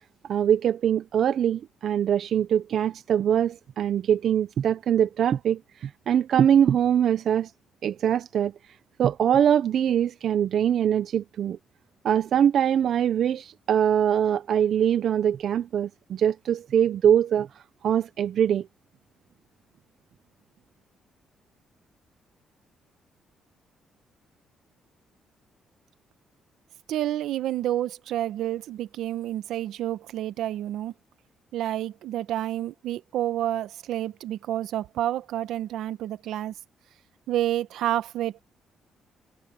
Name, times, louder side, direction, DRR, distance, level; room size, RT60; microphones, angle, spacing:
voice 1, 0.3-7.5 7.8-8.5 9.0-11.6 12.0-18.7, right 9 dB, 65° right, 0.6 m, -23 dB
voice 2, 26.9-30.9 31.5-36.5 37.3-38.4, right 12 dB, 80° right, 0.9 m, -29 dB
cardioid pair, 90°, 0 cm